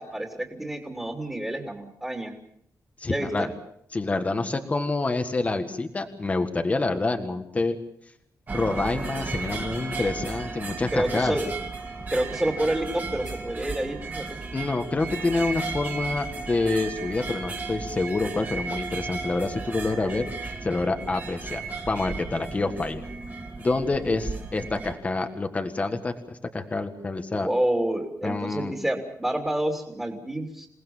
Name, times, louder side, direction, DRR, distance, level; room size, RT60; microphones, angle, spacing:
voice 1, 0.0-2.3 3.1-3.5 10.9-11.4 12.1-14.4 27.3-30.7, right 1 dB, 10° right, 1 dB, 3.0 m, -28 dB
voice 2, 3.0-3.5 3.9-7.8 8.5-11.3 14.5-23.0 23.6-27.5 28.2-28.7, left 3 dB, 20° left, 6 dB, 1.7 m, -27 dB
sound 1, 8.5-24.9, right 4 dB, 30° right, 2.9 m, -35 dB
28.0 x 18.5 x 7.3 m, 0.72 s
wide cardioid pair, 175°, 6 cm